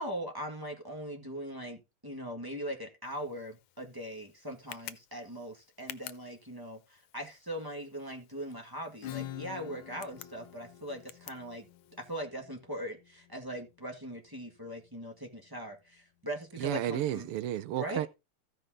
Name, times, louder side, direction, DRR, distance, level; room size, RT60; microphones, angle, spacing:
voice 1, 0.0-11.7 12.0-17.3 17.8-18.1, equal, 10° right, 1.5 m, -40 dB
Tick, 3.0-12.2, left 13 dB, 90° left, 1.7 m, -52 dB
Acoustic guitar / Strum, 9.0-14.4, left 11 dB, 75° left, 1.6 m, -46 dB
voice 2, 16.6-18.1, right 12 dB, 85° right, 1.6 m, -32 dB
15.0 x 5.6 x 3.7 m
omnidirectional pair, 2.4 m